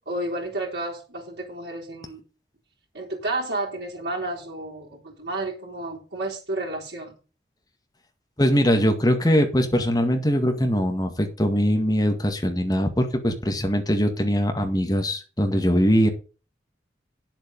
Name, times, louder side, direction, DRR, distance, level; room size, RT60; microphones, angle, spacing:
voice 1, 0.1-2.2 2.9-7.2, right 2 dB, 75° right, -7 dB, 3.9 m, -31 dB
voice 2, 8.4-16.1, equal, 20° left, 4 dB, 2.0 m, -21 dB
10.0 x 7.7 x 5.5 m, 0.34 s
head